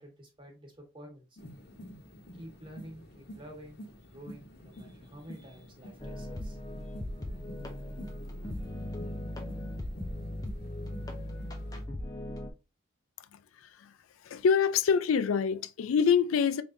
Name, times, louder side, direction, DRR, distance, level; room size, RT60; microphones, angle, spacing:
voice 1, 0.0-1.4 2.3-7.0, equal, 25° right, 1.2 m, -50 dB
sound 1, 1.4-11.8, equal, 50° left, 0.9 m, -49 dB
sound 2, 6.0-12.5, left 1 dB, 20° left, 0.5 m, -38 dB
voice 2, 14.2-16.6, left 6 dB, 80° left, 0.4 m, -25 dB
3.8 x 3.5 x 2.5 m
head